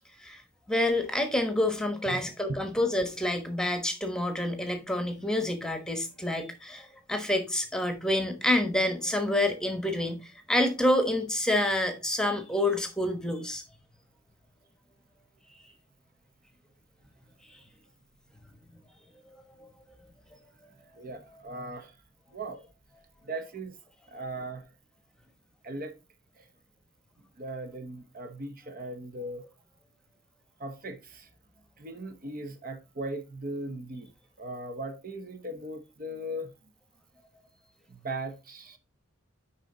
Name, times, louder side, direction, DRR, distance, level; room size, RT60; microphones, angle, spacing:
voice 1, 0.7-13.6 19.6-19.7, left 1 dB, 5° left, 1.1 m, -28 dB
voice 2, 20.9-22.0 22.3-22.6 23.2-23.8 24.1-24.7 25.6-26.0 26.4-26.5 27.4-29.5 30.6-31.3 31.8-34.1 34.4-36.5 37.9-38.8, right 1 dB, 45° right, 0.9 m, -38 dB
10.0 x 3.9 x 3.8 m
head